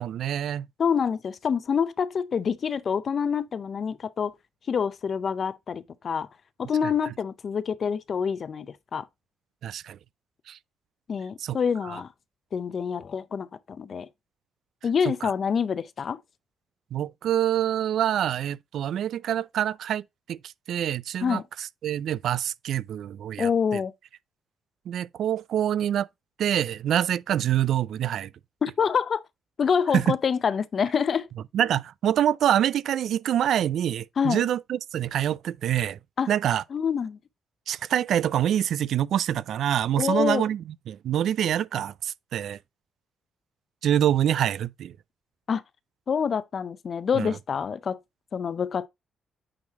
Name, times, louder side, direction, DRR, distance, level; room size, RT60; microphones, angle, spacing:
voice 1, 0.0-0.7 9.6-10.0 10.5-10.6 11.4-11.6 11.8-12.0 15.2-15.3 16.9-20.0 20.3-20.4 20.7-23.8 24.9-26.1 26.4-28.3 29.9-30.2 31.5-36.0 36.3-36.6 37.7-42.6 43.8-44.9 47.2-47.3, right 10 dB, 70° right, 0.3 m, -26 dB
voice 2, 0.8-4.3 4.7-6.3 6.6-9.1 11.1-12.1 12.5-14.1 14.8-16.2 21.2-21.4 23.4-23.9 28.6-29.2 29.6-31.3 34.2-34.5 36.2-36.3 36.7-37.2 40.0-40.4 45.5-45.6 46.1-48.0 48.3-48.9, left 6 dB, 50° left, 0.5 m, -26 dB
8.7 x 3.2 x 3.5 m
cardioid pair, 90°, 0 cm